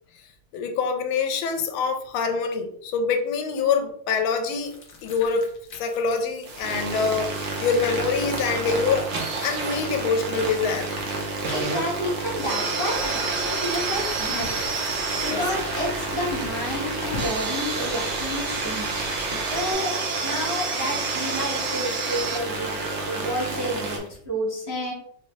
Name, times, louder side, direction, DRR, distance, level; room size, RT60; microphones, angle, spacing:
voice 1, 0.5-4.7 5.0-9.2 9.4-10.9 15.3-15.5 19.3-19.4, left 5 dB, 85° left, 6 dB, 1.4 m, -25 dB
sound 1, 4.3-24.2, left 3 dB, 65° left, 0.7 m, -46 dB
sound 2, 6.5-24.0, right 3 dB, 65° right, 0.7 m, -29 dB
voice 2, 11.5-14.6 15.2-18.9 19.5-24.9, equal, 20° right, -5 dB, 0.6 m, -30 dB
sound 3, 12.9-19.7, right 1 dB, 80° right, 1.9 m, -36 dB
3.9 x 2.6 x 3.1 m, 0.64 s
omnidirectional pair, 2.2 m